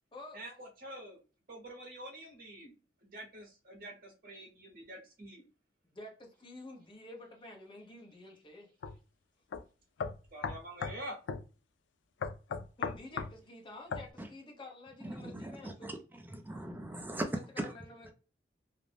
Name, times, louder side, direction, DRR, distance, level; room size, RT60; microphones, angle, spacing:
voice 1, 0.3-1.2 1.5-2.7 3.0-5.4 10.3-11.2, right 1 dB, 55° right, 0.8 m, -46 dB
voice 2, 5.9-8.7 12.8-16.0 17.1-18.1, left 1 dB, 30° left, 0.8 m, -50 dB
sound 1, 8.8-9.0 9.5-9.6 10.0-11.0 11.3-11.5 12.2-13.3 13.9-14.1, left 5 dB, 90° left, 0.4 m, -36 dB
voice 3, 15.0-15.9 16.3-17.3 17.6-17.7, right 1 dB, 10° right, 0.3 m, -39 dB
2.5 x 2.0 x 3.2 m
head